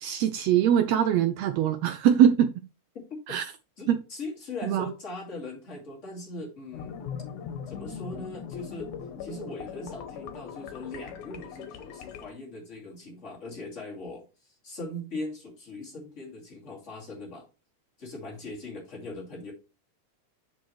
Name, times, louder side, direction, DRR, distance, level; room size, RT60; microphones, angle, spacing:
voice 1, 0.0-2.5 3.3-3.4 3.9-4.0 4.6-4.9, right 9 dB, 80° right, 1.6 m, -22 dB
voice 2, 3.8-7.0 7.7-8.9 9.2-17.5 18.0-19.5, left 2 dB, 25° left, 2.5 m, -40 dB
sound 1, 6.7-12.3, left 7 dB, 80° left, 2.4 m, -40 dB
7.3 x 6.2 x 3.2 m
omnidirectional pair, 3.5 m